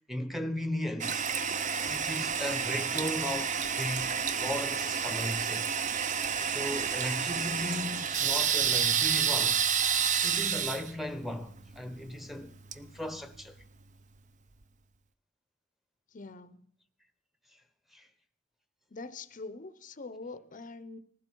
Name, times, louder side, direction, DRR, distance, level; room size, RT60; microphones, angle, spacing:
voice 1, 0.1-1.3 1.8-5.7 6.4-9.6 10.2-13.6 17.9-18.1, left 1 dB, ahead, 1.0 m, -36 dB
Toilet flush, 1.0-13.6, right 7 dB, 40° right, 0.7 m, -30 dB
voice 2, 16.1-16.6 18.9-21.0, left 3 dB, 40° left, 0.7 m, -44 dB
20.0 x 15.5 x 4.6 m
head